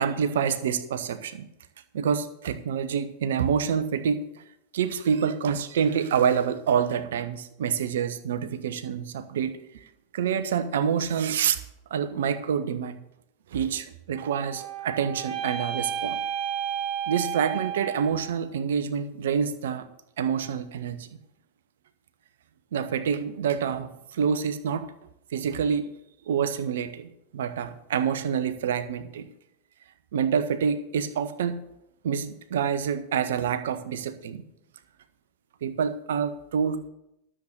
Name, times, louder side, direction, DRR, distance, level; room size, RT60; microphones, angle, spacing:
voice 1, 0.0-1.5 1.9-4.4 4.7-11.6 11.9-13.0 13.5-16.2 17.1-19.9 20.2-21.1 22.7-24.9 25.3-25.9 26.3-29.3 30.1-31.6 32.0-34.4 35.6-36.9, right 7 dB, 60° right, 12 dB, 1.0 m, -27 dB
sound 1, 14.1-18.4, right 9 dB, 35° right, 1.2 m, -32 dB
13.0 x 7.5 x 6.7 m, 0.82 s
figure-of-eight pair, 90°, 0 cm